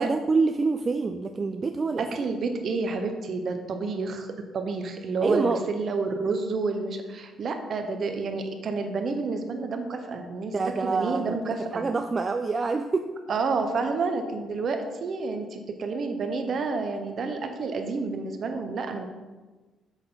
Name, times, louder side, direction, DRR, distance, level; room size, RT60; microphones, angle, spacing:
voice 1, 0.0-2.1 5.2-5.6 10.5-11.4 11.7-13.1 18.5-18.6, right 4 dB, 30° right, 6 dB, 0.4 m, -26 dB
voice 2, 2.0-10.5 10.8-11.8 13.3-19.1, right 4 dB, 50° right, 6 dB, 1.0 m, -29 dB
7.6 x 6.3 x 3.9 m, 1.3 s
cardioid pair, 100°, 0 cm